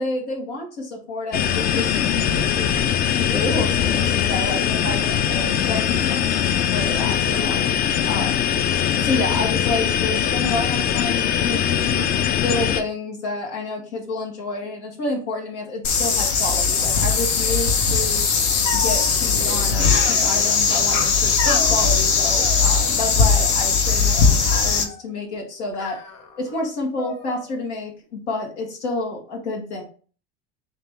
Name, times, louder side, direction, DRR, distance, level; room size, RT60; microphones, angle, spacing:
voice 1, 0.0-6.3 6.7-7.6 8.1-8.3 8.9-12.1 12.4-18.2 18.7-26.0 26.4-29.8, left 2 dB, 85° left, -1 dB, 1.3 m, -29 dB
sound 1, 1.3-12.8, left 9 dB, 30° left, 0.4 m, -21 dB
sound 2, 15.8-24.8, left 5 dB, 70° left, 0.9 m, -19 dB
sound 3, 18.6-19.1 19.9-20.6 21.4-21.8 22.4-23.2 23.5-24.0 24.5-25.0 25.7-26.6 27.0-27.7, left 4 dB, 50° left, 1.1 m, -34 dB
3.4 x 2.8 x 3.5 m, 0.41 s
supercardioid pair, 100°, 34 cm